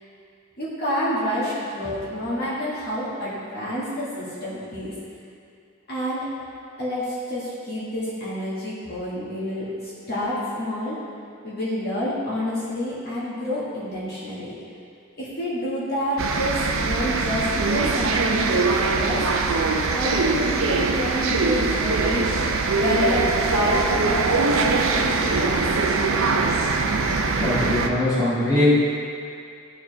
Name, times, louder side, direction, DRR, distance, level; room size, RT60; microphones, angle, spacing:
voice 1, 0.6-4.9 5.9-6.3 6.8-11.0 11.4-14.5 15.2-19.3 19.9-25.6, left 1 dB, 50° left, -9 dB, 1.8 m, -28 dB
sound 1, 16.2-27.9, right 4 dB, 65° right, 0.5 m, -22 dB
voice 2, 27.4-28.8, left 1 dB, 15° left, -11 dB, 2.0 m, -20 dB
13.0 x 4.7 x 3.4 m, 2.3 s
head